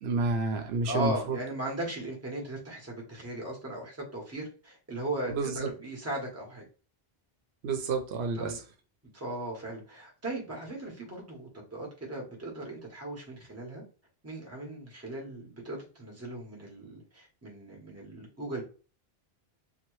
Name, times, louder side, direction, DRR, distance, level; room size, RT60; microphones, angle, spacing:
voice 1, 0.0-1.4 5.3-5.7 7.6-8.6, right 3 dB, 80° right, 0.8 m, -30 dB
voice 2, 0.8-6.6 8.4-8.6 9.1-13.8 14.2-18.6, right 1 dB, 15° right, 0.9 m, -37 dB
2.8 x 2.1 x 3.0 m
omnidirectional pair, 1.1 m